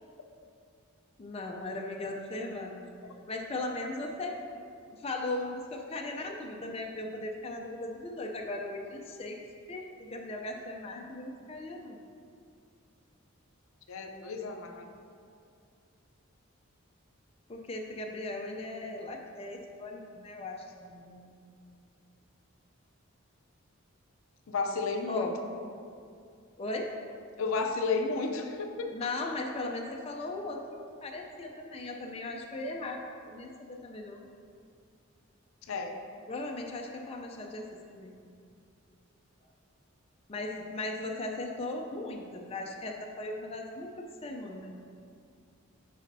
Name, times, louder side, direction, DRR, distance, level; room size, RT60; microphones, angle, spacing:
voice 1, 1.2-2.9 3.3-4.4 4.9-9.4 9.7-12.0 17.5-21.3 25.1-25.3 26.6-26.9 28.9-34.3 36.3-38.2 40.3-44.7, left 2 dB, 30° left, 1 dB, 0.4 m, -38 dB
voice 2, 13.9-14.9 24.5-25.3 27.4-28.9 35.7-35.9, left 4 dB, 75° left, 5 dB, 0.5 m, -32 dB
10.5 x 4.1 x 2.6 m, 2.4 s
head